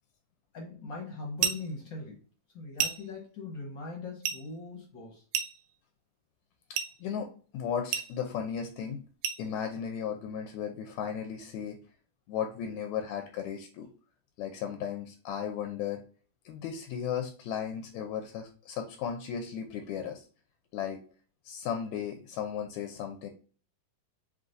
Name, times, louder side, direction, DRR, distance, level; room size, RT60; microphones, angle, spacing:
voice 1, 0.5-2.2 2.5-5.2, left 3 dB, 60° left, -1 dB, 1.2 m, -41 dB
sound 1, 1.4-1.7 2.8-3.2 4.2-4.5 5.3-5.7 6.7-7.0 7.9-8.2 9.2-9.5, right 8 dB, 85° right, 2.2 m, -31 dB
voice 2, 6.7-9.0 9.4-11.8 12.3-13.9 14.4-16.0 16.5-20.2 20.7-21.0 21.5-23.3, left 8 dB, 75° left, 5 dB, 1.8 m, -35 dB
5.4 x 3.0 x 2.6 m, 0.40 s
omnidirectional pair, 3.7 m